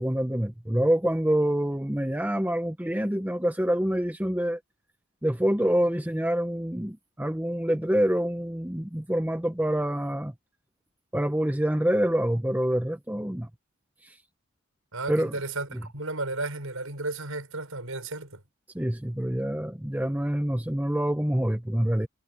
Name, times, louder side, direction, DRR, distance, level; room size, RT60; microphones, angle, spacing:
voice 1, 0.0-4.6 5.2-10.3 11.1-13.5 14.0-14.1 15.1-15.3 18.7-22.1, equal, 5° right, 0.8 m, -26 dB
voice 2, 14.9-18.4, right 2 dB, 75° right, 5.7 m, -33 dB
head